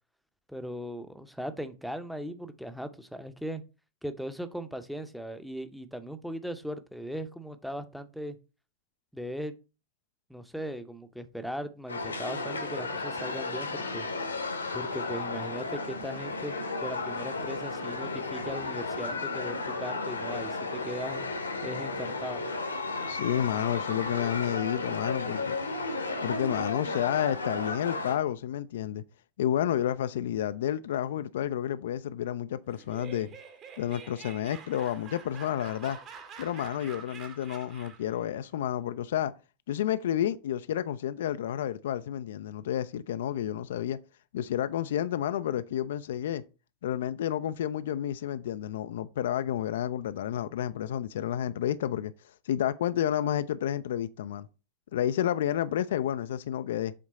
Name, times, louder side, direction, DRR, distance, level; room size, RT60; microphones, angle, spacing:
voice 1, 0.5-3.6 4.0-8.4 9.1-9.5 10.3-14.1 14.7-21.2 21.6-22.4, equal, ahead, 0.7 m, -38 dB
sound 1, 11.9-28.2, left 3 dB, 80° left, 1.0 m, -34 dB
voice 2, 23.1-25.6 26.2-29.0 29.4-33.3 33.8-36.0 36.4-39.3 39.7-44.0 44.3-46.4 46.8-54.5 54.9-56.9, left 11 dB, 60° left, 0.3 m, -30 dB
Laughter, 32.7-38.2, right 6 dB, 35° right, 1.1 m, -47 dB
7.5 x 3.7 x 4.1 m
figure-of-eight pair, 90°, 0 cm